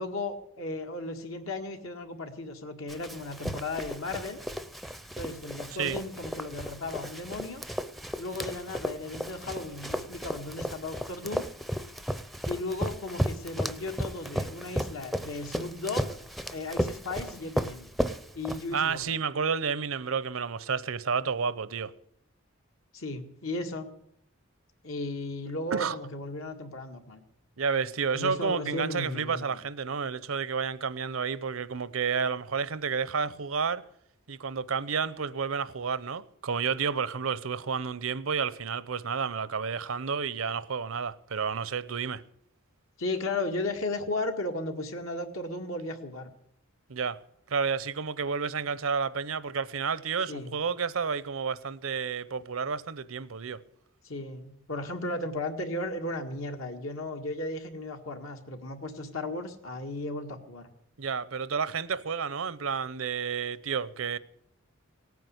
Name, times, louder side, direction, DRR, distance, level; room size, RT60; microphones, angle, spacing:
voice 1, 0.0-4.4 5.2-7.6 8.2-11.5 12.5-16.2 16.5-17.9 18.4-19.1 22.9-23.9 24.8-27.2 28.1-29.6 43.0-46.3 50.3-50.5 54.0-60.7, left 2 dB, 75° left, 1.9 m, -35 dB
Run, 2.9-19.0, equal, ahead, 0.6 m, -35 dB
voice 2, 18.7-21.9 25.7-26.0 27.6-33.8 34.3-42.2 46.9-47.2 47.5-53.6 61.0-64.2, right 6 dB, 75° right, 0.8 m, -30 dB
17.5 x 9.4 x 8.0 m
head